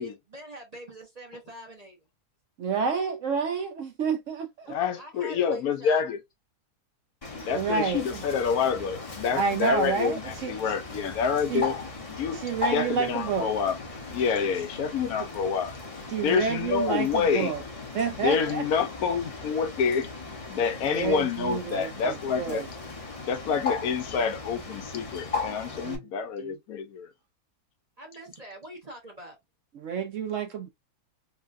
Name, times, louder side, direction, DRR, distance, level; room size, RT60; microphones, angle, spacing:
voice 1, 0.0-2.0 4.6-6.0 28.0-29.4, right 1 dB, 35° right, 0.7 m, -45 dB
voice 2, 2.6-4.8 7.3-8.2 9.3-10.5 11.5-11.7 12.3-13.5 16.1-17.6 17.9-18.6 20.8-22.7 25.8-26.0 26.4-26.5 29.7-30.7, right 5 dB, 65° right, 0.9 m, -29 dB
voice 3, 4.7-6.2 7.5-11.7 12.1-13.8 14.1-15.7 16.2-17.5 18.2-20.1 20.5-22.6 23.3-27.1, left 6 dB, 75° left, 1.1 m, -27 dB
Bird, 7.2-26.0, left 4 dB, 30° left, 0.7 m, -38 dB
3.9 x 2.2 x 2.4 m
omnidirectional pair, 1.6 m